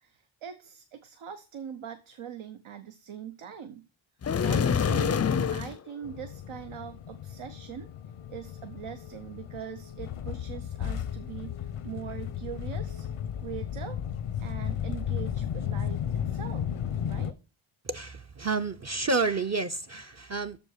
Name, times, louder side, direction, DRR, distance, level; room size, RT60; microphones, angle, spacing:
voice 1, 0.0-3.9 4.4-5.2 5.5-7.9 8.3-13.1 13.4-14.0 14.4-16.7 17.0-17.3, right 8 dB, 85° right, 0.8 m, -42 dB
sound 1, 4.2-5.8, left 7 dB, 35° left, 0.4 m, -25 dB
sound 2, 6.0-17.3, left 9 dB, 85° left, 0.7 m, -34 dB
voice 2, 17.9-20.6, right 3 dB, 35° right, 0.6 m, -30 dB
6.7 x 5.2 x 6.4 m
cardioid pair, 55°, 49 cm